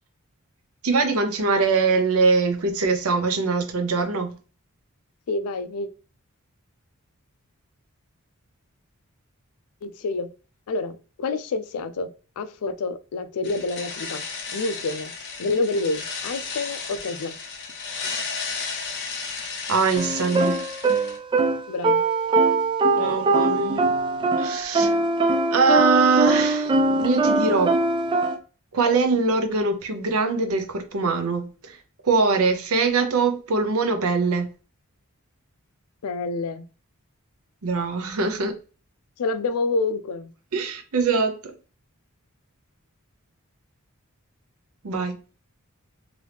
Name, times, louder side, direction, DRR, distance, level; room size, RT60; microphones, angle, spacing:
voice 1, 0.8-4.4 19.7-20.6 23.0-23.9 24.4-24.9 25.5-27.8 28.7-31.8 32.0-34.5 37.6-38.6 40.5-41.5 44.8-45.2, right 4 dB, 80° right, 0.7 m, -22 dB
voice 2, 5.3-5.9 9.8-10.3 10.7-12.1 12.4-14.2 14.5-15.1 15.4-17.3 21.7-22.0 22.9-23.1 36.0-36.6 39.2-40.3, left 3 dB, 85° left, 0.4 m, -28 dB
sound 1, 13.4-21.2, left 4 dB, 55° left, 0.8 m, -34 dB
sound 2, 19.9-28.3, right 3 dB, 20° right, 0.4 m, -22 dB
2.9 x 2.7 x 3.3 m
head